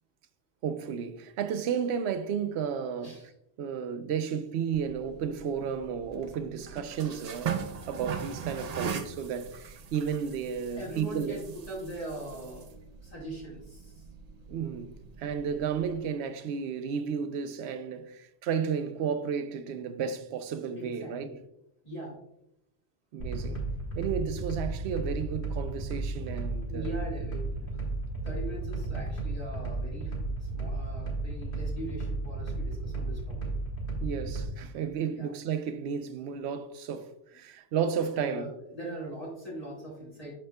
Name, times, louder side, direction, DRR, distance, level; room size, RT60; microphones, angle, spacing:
voice 1, 0.6-3.3 3.6-11.4 14.5-21.3 23.1-23.6 24.0-26.9 34.0-38.5, right 7 dB, 70° right, 0.8 m, -33 dB
sound 1, 4.7-16.0, right 7 dB, 45° right, 0.5 m, -40 dB
voice 2, 10.8-12.7 13.0-14.0 20.8-21.4 21.8-22.2 26.7-27.7 28.2-33.4 34.9-35.3 38.1-40.3, right 1 dB, 30° left, 2.2 m, -41 dB
sound 2, 23.2-34.4, right 2 dB, 70° left, 1.9 m, -34 dB
12.0 x 4.3 x 2.2 m
omnidirectional pair, 1.2 m